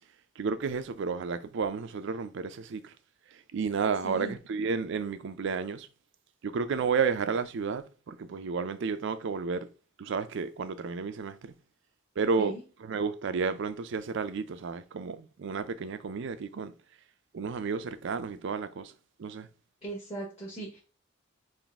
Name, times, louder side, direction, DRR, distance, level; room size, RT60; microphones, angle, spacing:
voice 1, 0.4-2.9 3.3-5.9 6.4-9.7 10.0-11.5 12.2-12.5 12.8-16.7 17.3-18.9 19.2-19.5, right 5 dB, 65° right, 0.4 m, -32 dB
voice 2, 4.0-4.3 12.4-12.6 19.8-20.8, right 2 dB, 30° left, 1.4 m, -38 dB
4.0 x 2.5 x 3.5 m
head